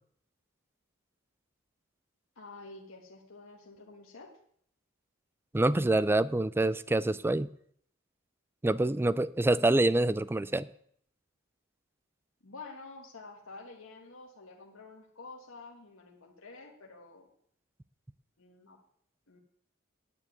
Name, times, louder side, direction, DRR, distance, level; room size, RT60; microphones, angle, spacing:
voice 1, 2.3-4.3 12.4-17.3 18.4-18.8 19.3-19.4, left 3 dB, 70° left, 1.5 m, -49 dB
voice 2, 5.5-7.5 8.6-10.7, right 2 dB, 10° right, 0.4 m, -26 dB
10.0 x 7.1 x 9.3 m
head